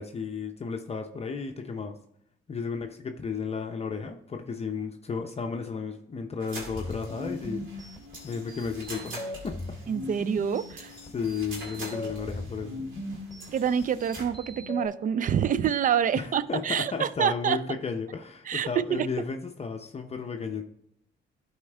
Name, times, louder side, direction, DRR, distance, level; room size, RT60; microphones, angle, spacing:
voice 1, 0.0-2.0 2.5-9.6 11.1-12.8 16.1-20.6, left 5 dB, 30° left, 4 dB, 0.6 m, -34 dB
sound 1, 6.4-14.2, right 2 dB, 80° right, 2.2 m, -45 dB
sound 2, 6.6-14.9, left 1 dB, ahead, 2.8 m, -39 dB
voice 2, 9.9-10.9 13.5-17.6 18.5-19.1, right 8 dB, 45° right, 16 dB, 0.4 m, -27 dB
11.5 x 4.4 x 3.3 m, 0.73 s
cardioid pair, 90°, 20 cm